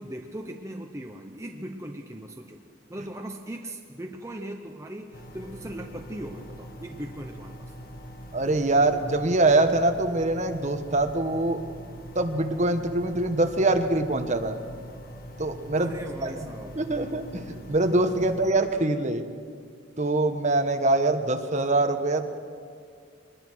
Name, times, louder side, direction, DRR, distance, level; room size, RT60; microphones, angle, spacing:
voice 1, 0.0-2.6 2.9-7.7 15.7-17.1, right 1 dB, 15° right, 2 dB, 1.0 m, -39 dB
sound 1, 5.1-18.5, equal, 50° left, 1.7 m, -43 dB
voice 2, 8.3-11.6 12.1-14.5 15.4-15.9 16.2-16.5 16.8-19.2 20.0-22.4, right 2 dB, 40° right, 6 dB, 1.3 m, -24 dB
23.0 x 20.5 x 6.3 m, 2.1 s
head